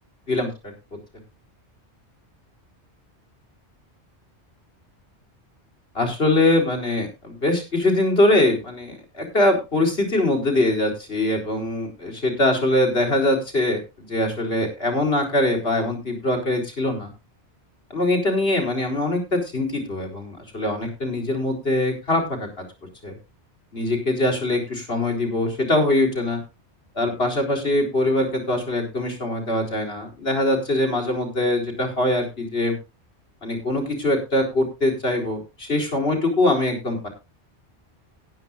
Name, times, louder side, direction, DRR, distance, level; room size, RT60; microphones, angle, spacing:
voice 1, 0.3-0.7 5.9-13.8 14.1-17.1 17.9-22.5 23.0-23.1 23.7-26.4 26.9-32.7 33.4-37.1, left 1 dB, 60° left, 2 dB, 4.7 m, -22 dB
19.0 x 10.0 x 2.6 m, 0.27 s
omnidirectional pair, 1.1 m